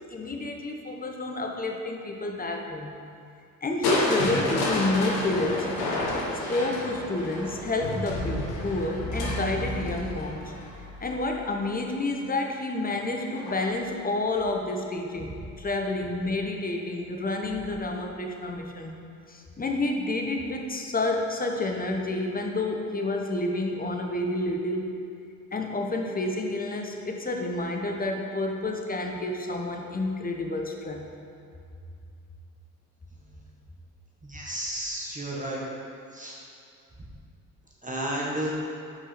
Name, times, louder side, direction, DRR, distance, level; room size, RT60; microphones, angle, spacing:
voice 1, 0.0-3.0 3.6-5.7 6.1-6.2 6.5-10.5 11.0-19.0 19.3-25.0 25.5-31.1, left 2 dB, 20° left, 2 dB, 0.9 m, -29 dB
Crushing, 3.8-11.8 13.3-13.9 14.3-14.4, left 2 dB, 65° left, 1.2 m, -30 dB
voice 2, 34.2-35.6 36.1-36.4 37.8-38.5, right 1 dB, 20° right, -4 dB, 1.3 m, -32 dB
5.7 x 4.8 x 4.2 m, 2.4 s
hypercardioid pair, 50°, 40 cm